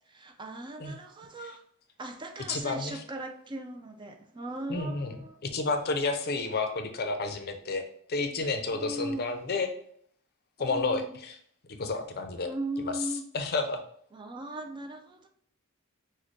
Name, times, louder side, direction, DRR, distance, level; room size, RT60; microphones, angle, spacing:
voice 1, 0.1-1.6 2.0-5.4 8.7-9.3 10.6-11.1 12.4-13.2 14.1-15.3, right 1 dB, 20° right, 5 dB, 0.4 m, -38 dB
voice 2, 2.5-3.0 4.7-5.2 5.4-7.8 8.1-9.7 10.6-11.3 11.8-12.5 13.3-13.8, left 3 dB, 45° left, 6 dB, 0.5 m, -30 dB
6.2 x 2.2 x 3.1 m, 0.63 s
head